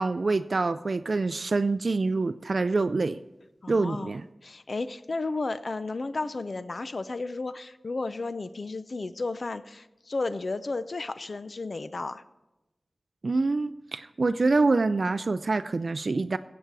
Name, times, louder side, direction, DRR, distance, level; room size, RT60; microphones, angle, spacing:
voice 1, 0.0-3.2 3.7-4.2 13.2-16.4, right 3 dB, 60° right, 11 dB, 0.3 m, -26 dB
voice 2, 3.6-4.2 4.4-12.2, left 3 dB, 60° left, 13 dB, 0.5 m, -33 dB
16.5 x 7.8 x 4.7 m, 1.0 s
wide cardioid pair, 65°, 0 cm